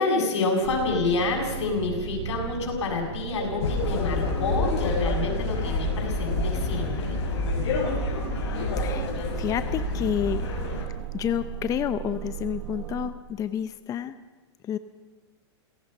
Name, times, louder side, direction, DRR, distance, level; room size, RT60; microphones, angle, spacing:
voice 1, 0.0-7.2, left 3 dB, 90° left, 1 dB, 7.5 m, -28 dB
sound 1, 0.6-13.1, right 10 dB, 75° right, 1.2 m, -37 dB
sound 2, 3.6-10.8, left 2 dB, 70° left, 6.3 m, -28 dB
voice 2, 9.4-10.4 11.1-14.2 14.6-14.8, left 10 dB, 25° left, 12 dB, 0.7 m, -29 dB
29.0 x 17.5 x 5.5 m, 1.3 s
hypercardioid pair, 140°, 14 cm